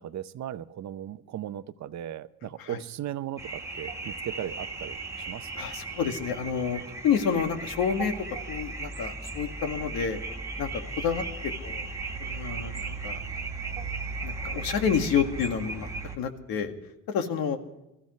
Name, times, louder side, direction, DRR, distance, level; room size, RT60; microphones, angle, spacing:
voice 1, 0.0-5.0 5.3-5.5, right 11 dB, 50° right, 13 dB, 0.7 m, -37 dB
sound 1, 3.4-16.2, right 3 dB, 10° right, 1.7 m, -36 dB
voice 2, 5.6-8.1 8.5-10.2 10.6-11.2 11.6-11.8 12.2-13.2 14.2-15.9 16.2-16.7 17.1-17.6, left 7 dB, 85° left, 6 dB, 2.0 m, -29 dB
23.5 x 14.5 x 3.2 m, 0.92 s
cardioid pair, 150°, 35 cm